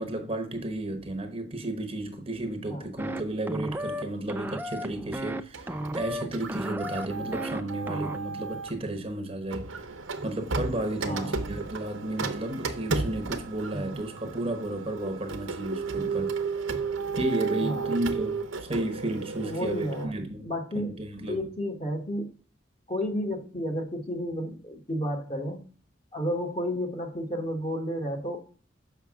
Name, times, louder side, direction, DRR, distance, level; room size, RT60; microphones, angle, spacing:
voice 1, 0.0-9.8 10.2-16.4 17.2-20.5 20.7-21.4, right 1 dB, 30° right, 1.0 m, -33 dB
sound 1, 3.0-3.2 3.5-4.0 4.3-5.4 5.7-6.2 6.5-7.6 7.9-8.2, equal, 10° right, 0.4 m, -34 dB
Printer, 5.5-8.8 9.5-20.1, right 4 dB, 90° right, 1.0 m, -34 dB
voice 2, 11.0-11.6 13.7-14.0 15.9-16.2 17.6-17.9 19.4-20.1 20.4-20.9 21.3-22.3 22.9-25.6 26.1-28.4, equal, 30° left, 1.3 m, -32 dB
6.9 x 5.8 x 3.6 m
head